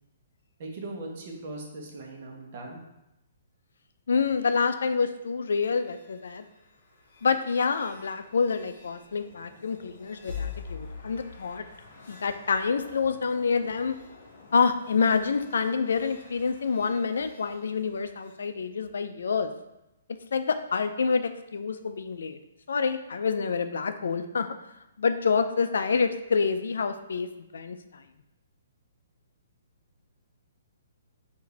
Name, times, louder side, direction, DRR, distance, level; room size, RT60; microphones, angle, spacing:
voice 1, 0.6-2.8, right 2 dB, 45° right, 0 dB, 0.9 m, -39 dB
voice 2, 4.1-6.4 7.2-11.6 12.1-14.0 14.5-19.5 20.3-22.4 22.7-24.5 25.0-27.3 27.5-28.0, left 5 dB, 80° left, 9 dB, 0.3 m, -27 dB
sound 1, 5.6-18.4, left 5 dB, 55° left, 0.9 m, -46 dB
4.7 x 2.6 x 3.2 m, 0.93 s
hypercardioid pair, 165°, 0 cm